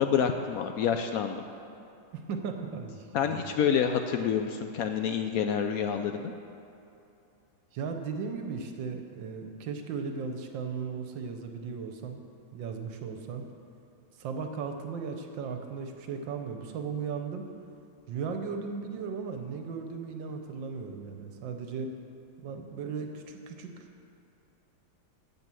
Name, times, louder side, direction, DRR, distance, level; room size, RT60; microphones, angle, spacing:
voice 1, 0.0-1.4 3.1-6.3, left 7 dB, 90° left, 6 dB, 0.7 m, -28 dB
voice 2, 2.1-3.5 7.7-12.2 12.5-13.4 14.2-17.5 18.1-22.0 22.4-23.9, right 5 dB, 75° right, 5 dB, 1.5 m, -36 dB
9.5 x 7.7 x 7.5 m, 2.8 s
omnidirectional pair, 2.1 m